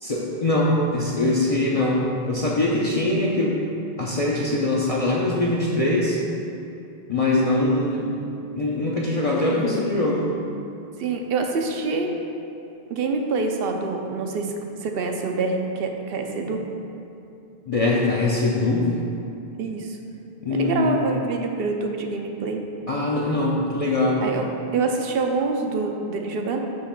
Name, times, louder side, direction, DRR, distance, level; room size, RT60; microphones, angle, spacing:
voice 1, 0.0-3.5 4.0-6.2 7.1-8.2 8.5-10.2 17.7-18.9 20.4-20.9 22.9-24.2, left 2 dB, 45° left, -5 dB, 0.5 m, -22 dB
voice 2, 11.0-12.1 12.9-14.5 14.8-16.6 19.6-20.0 20.5-22.6 24.2-24.5 24.7-26.6, right 4 dB, 70° right, 3 dB, 0.8 m, -26 dB
6.4 x 3.0 x 5.8 m, 2.7 s
omnidirectional pair, 1.1 m